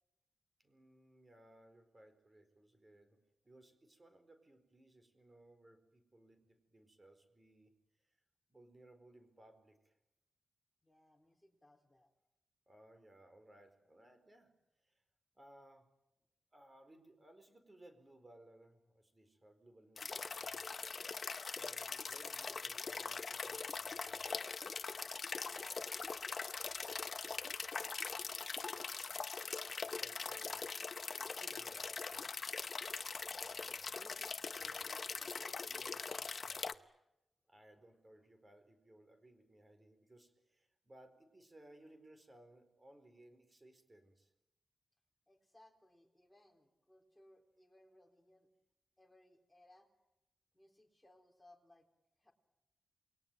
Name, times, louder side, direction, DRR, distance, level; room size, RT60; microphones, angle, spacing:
voice 1, 0.6-3.2 3.4-7.7 8.0-8.2 8.5-10.0 12.7-14.5 14.8-15.0 15.3-15.9 16.5-20.6 21.5-24.4 29.8-30.7 31.1-32.3 33.4-36.8 37.5-44.3, right 1 dB, 20° right, 8 dB, 4.5 m, -62 dB
voice 2, 10.8-12.1 25.3-28.7 32.8-33.1 34.6-34.9 36.4-36.6 37.5-37.6 45.3-48.5 49.0-49.9 50.5-51.9 52.2-52.3, left 1 dB, 10° left, 3 dB, 4.1 m, -65 dB
sound 1, 20.0-36.7, left 4 dB, 45° left, 1.0 m, -42 dB
29.0 x 22.0 x 9.2 m, 0.89 s
wide cardioid pair, 135°, 0 cm